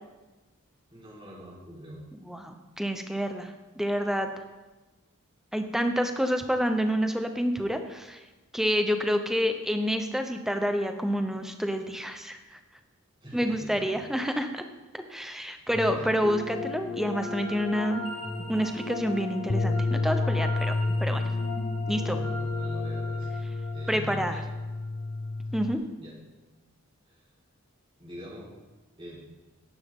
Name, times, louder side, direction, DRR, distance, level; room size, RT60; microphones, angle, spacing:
voice 1, 0.9-2.0 13.2-13.7 14.1-14.3 15.9-16.1 21.9-23.4 23.7-24.4 25.5-25.7 26.0-26.1 27.1-27.2 28.0-28.5 29.0-29.2, right 1 dB, 25° right, -5 dB, 4.0 m, -44 dB
voice 2, 2.3-4.3 5.5-8.2 8.5-12.6 13.3-14.6 14.9-18.0 18.5-20.7 21.0-21.2 21.9-22.2 23.9-24.4 25.5-25.8, equal, ahead, 6 dB, 0.8 m, -28 dB
sound 1, 15.7-24.9, left 3 dB, 90° left, 2.9 m, -37 dB
sound 2, 19.5-25.7, left 2 dB, 30° left, 0.5 m, -30 dB
17.0 x 10.5 x 3.8 m, 1.2 s
head